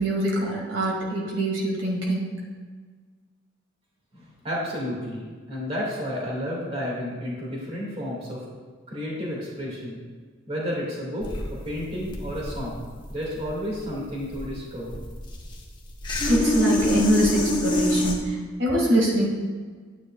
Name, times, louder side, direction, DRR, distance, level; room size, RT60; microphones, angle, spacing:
voice 1, 0.0-2.4 16.3-19.3, right 1 dB, 70° right, -3 dB, 2.2 m, -24 dB
voice 2, 4.1-8.4 8.9-10.0 10.5-12.8 13.1-14.9, equal, 30° right, -4 dB, 2.2 m, -31 dB
sound 1, 11.2-18.1, left 1 dB, 25° left, 1.1 m, -27 dB
11.5 x 9.5 x 2.4 m, 1.5 s
head